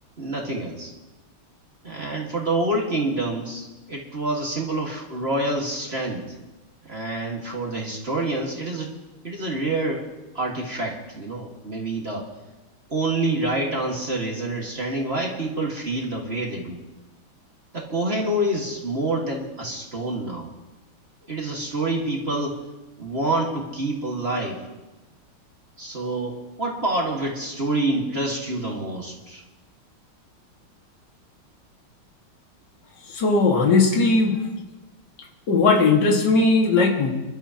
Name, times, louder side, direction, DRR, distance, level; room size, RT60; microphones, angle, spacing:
voice 1, 0.2-0.9 1.8-6.3 6.8-8.9 9.2-10.1 10.3-12.3 12.9-16.8 17.7-20.5 21.3-22.6 23.0-24.6 25.8-29.4, right 2 dB, 30° right, -2 dB, 1.8 m, -27 dB
voice 2, 33.1-34.4 35.5-37.1, left 3 dB, 55° left, 0 dB, 2.4 m, -18 dB
27.0 x 12.5 x 2.9 m, 1.1 s
omnidirectional pair, 2.3 m